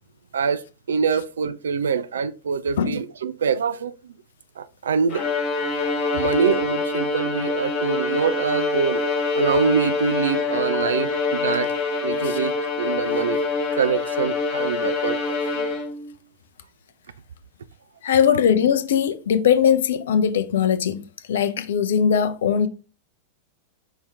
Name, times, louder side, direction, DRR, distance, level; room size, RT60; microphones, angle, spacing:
voice 1, 0.9-4.1 4.6-5.2 6.1-9.0 9.3-11.7 12.0-13.4 13.7-15.7, right 6 dB, 65° right, 0.3 m, -24 dB
Bowed string instrument, 5.1-16.1, left 3 dB, 45° left, 1.1 m, -25 dB
voice 2, 18.0-22.7, left 8 dB, 60° left, 0.5 m, -20 dB
5.5 x 2.8 x 3.4 m
figure-of-eight pair, 90°, 0 cm